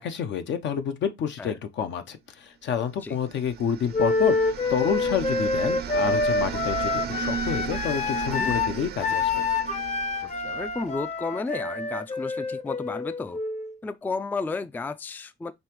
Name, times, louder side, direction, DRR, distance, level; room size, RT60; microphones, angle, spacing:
voice 1, 0.0-9.3, left 7 dB, 65° left, 0.7 m, -29 dB
sound 1, 3.1-11.1, right 9 dB, 55° right, 0.5 m, -36 dB
Wind instrument woodwind instrument, 3.9-13.7, left 3 dB, 35° left, 0.7 m, -27 dB
voice 2, 10.2-13.4 13.8-15.5, left 3 dB, 10° left, 0.3 m, -33 dB
5.4 x 2.9 x 3.0 m
cardioid pair, 90°, 20 cm